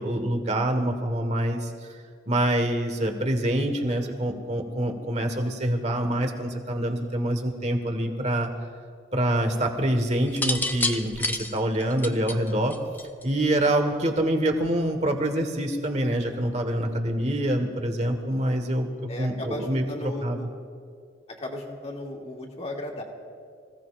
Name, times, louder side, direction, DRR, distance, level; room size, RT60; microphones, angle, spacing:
voice 1, 0.0-1.7 2.3-8.5 9.1-12.8 13.2-20.4, right 1 dB, 40° right, 5 dB, 1.5 m, -26 dB
sound 1, 10.3-13.4 14.5-14.9, left 2 dB, 10° left, 0.6 m, -29 dB
voice 2, 19.1-20.5 21.3-23.0, left 1 dB, 35° left, 0 dB, 2.0 m, -35 dB
26.5 x 16.5 x 2.5 m, 2.2 s
head